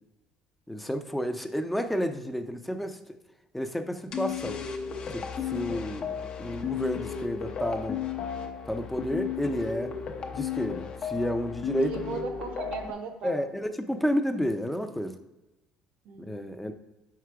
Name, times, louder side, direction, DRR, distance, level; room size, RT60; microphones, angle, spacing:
voice 1, 0.7-3.0 3.5-4.6 5.1-5.2 5.5-8.0 8.7-9.9 10.3-12.0 13.2-15.1 16.3-16.7, equal, 5° left, 8 dB, 0.5 m, -30 dB
sound 1, 4.1-12.9, left 8 dB, 45° left, 0.7 m, -34 dB
voice 2, 11.8-13.4 16.0-16.7, right 5 dB, 65° right, 6 dB, 1.0 m, -38 dB
4.9 x 4.9 x 4.6 m, 1.0 s
cardioid pair, 115°, 2 cm